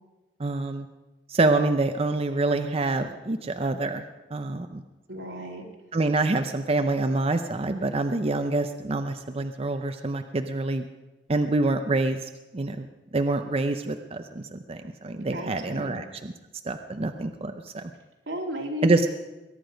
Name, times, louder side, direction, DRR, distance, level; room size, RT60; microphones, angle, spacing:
voice 1, 0.4-0.9 1.3-4.0 4.3-4.8 5.9-10.9 11.3-12.9 13.1-16.3 16.7-17.9 18.8-19.0, right 2 dB, 35° right, 7 dB, 0.6 m, -26 dB
voice 2, 5.1-5.7 15.3-16.0 18.3-19.1, left 1 dB, 90° right, -1 dB, 3.0 m, -33 dB
22.0 x 9.9 x 5.1 m, 1.1 s
head